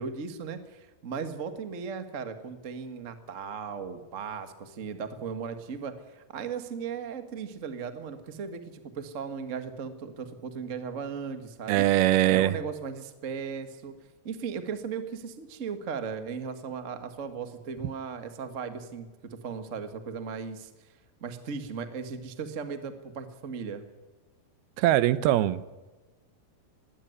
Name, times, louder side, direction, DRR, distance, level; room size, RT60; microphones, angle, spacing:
voice 1, 0.0-11.8 12.3-14.0 14.2-20.7 21.2-23.8, right 6 dB, 65° right, 9 dB, 0.7 m, -37 dB
voice 2, 11.7-12.6 24.8-25.6, right 14 dB, 85° right, 16 dB, 2.8 m, -22 dB
20.5 x 16.0 x 9.6 m, 1.2 s
omnidirectional pair, 4.4 m